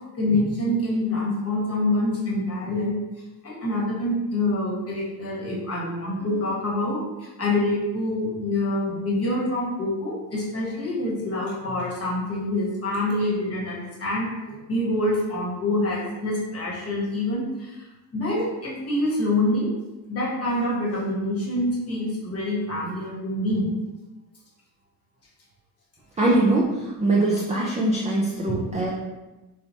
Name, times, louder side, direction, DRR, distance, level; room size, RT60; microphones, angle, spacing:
voice 1, 0.2-3.0 3.4-17.8 18.1-19.7 20.1-23.7 28.5-28.6, left 1 dB, 30° left, -4 dB, 1.1 m, -26 dB
voice 2, 26.2-28.9, right 2 dB, 15° right, -4 dB, 0.3 m, -22 dB
3.0 x 2.0 x 2.7 m, 1.1 s
hypercardioid pair, 65°, 48 cm